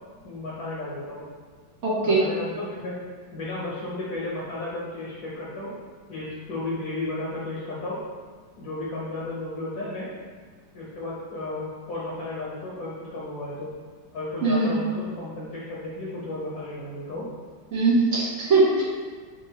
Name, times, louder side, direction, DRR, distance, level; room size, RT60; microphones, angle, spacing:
voice 1, 0.2-1.3 2.0-3.0 3.3-5.7 6.1-8.0 8.6-10.1 10.7-13.7 14.1-17.3, left 2 dB, 60° left, -7 dB, 1.3 m, -33 dB
voice 2, 1.8-2.2 14.4-14.7 17.7-18.8, right 3 dB, 55° right, -6 dB, 0.8 m, -21 dB
6.3 x 2.6 x 2.8 m, 1.5 s
omnidirectional pair, 2.1 m